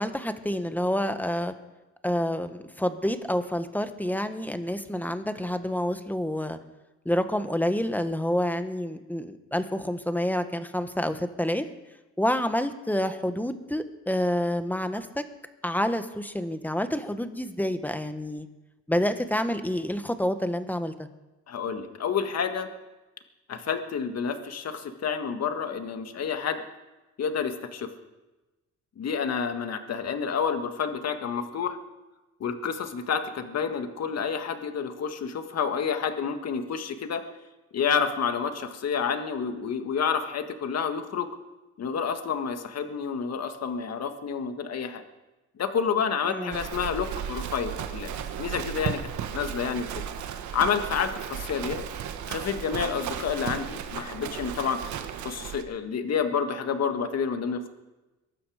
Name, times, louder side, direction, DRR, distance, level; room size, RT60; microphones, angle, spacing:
voice 1, 0.0-1.5 2.0-6.6 7.0-11.6 12.2-15.2 15.6-18.5 18.9-21.1 46.3-46.6, left 1 dB, 5° left, 9 dB, 1.3 m, -28 dB
voice 2, 21.5-22.7 23.5-26.6 27.2-27.9 29.0-31.8 32.4-37.3 37.7-41.3 41.8-45.0 45.6-48.1 48.4-49.0 49.3-50.0 50.5-51.8 52.3-54.8 55.2-57.7, left 6 dB, 55° left, 7 dB, 1.8 m, -29 dB
Livestock farm animals working animals, 46.5-55.6, right 8 dB, 70° right, 1.3 m, -35 dB
22.5 x 12.0 x 5.0 m, 1.1 s
cardioid pair, 90°, 30 cm